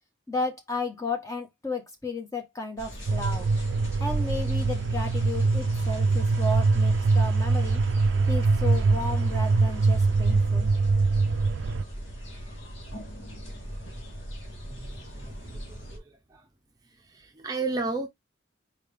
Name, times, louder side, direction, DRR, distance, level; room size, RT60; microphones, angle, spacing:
voice 1, 0.3-3.5 4.0-7.8 8.3-10.7, left 2 dB, 15° left, 1.0 m, -33 dB
sound 1, 2.8-16.0, equal, 80° left, 2.0 m, -40 dB
sound 2, 3.1-11.8, right 3 dB, 70° right, 0.3 m, -23 dB
voice 2, 14.7-16.5 16.9-18.1, right 3 dB, 20° right, 0.6 m, -34 dB
4.6 x 3.4 x 3.4 m
head